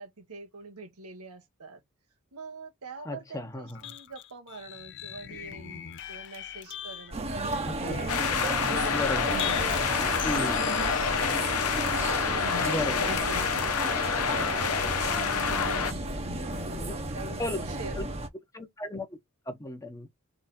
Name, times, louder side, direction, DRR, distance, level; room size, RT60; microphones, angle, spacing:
voice 1, 0.0-1.8 2.3-10.9 11.9-18.2, right 3 dB, 85° right, 1.4 m, -45 dB
voice 2, 3.1-3.9 7.9-8.0 8.9-9.3 10.2-10.7 12.6-13.1 16.8-17.0 17.4-17.6 18.0-18.1 18.5-19.2 19.5-20.1, left 1 dB, 15° left, 0.9 m, -34 dB
sound 1, 3.7-11.1, left 10 dB, 55° left, 0.5 m, -41 dB
sound 2, 7.1-18.3, right 2 dB, 30° right, 0.9 m, -33 dB
sound 3, 8.1-15.9, left 6 dB, 85° left, 0.9 m, -28 dB
3.8 x 3.2 x 4.2 m
head